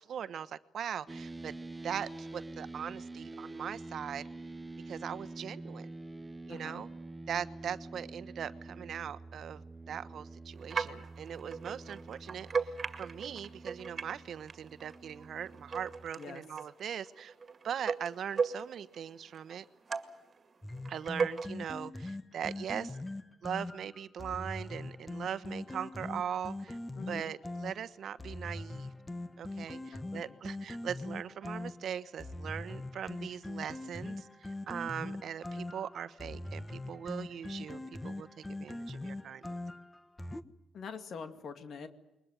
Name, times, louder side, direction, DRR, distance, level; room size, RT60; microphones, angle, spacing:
voice 1, 0.0-1.5 1.8-4.2 4.9-5.9 6.5-6.9 7.3-9.6 9.9-12.7 13.0-17.3 17.6-19.6 20.9-23.0 23.4-26.8 27.1-28.9 29.4-34.3 34.7-39.5, right 8 dB, 60° right, 15 dB, 1.2 m, -40 dB
sound 1, 1.1-16.1, right 2 dB, 15° right, 0.8 m, -47 dB
voice 2, 6.5-6.8 16.2-16.4 27.0-27.3 29.9-30.4 40.7-41.9, left 5 dB, 60° left, 8 dB, 2.2 m, -45 dB
sound 2, 10.6-14.2 14.5-19.0 19.3-20.3 20.7-21.5, right 5 dB, 40° right, 2.1 m, -37 dB
sound 3, 20.6-40.4, left 2 dB, 15° left, 1.3 m, -42 dB
22.0 x 21.0 x 9.3 m, 0.97 s
cardioid pair, 90°, 0 cm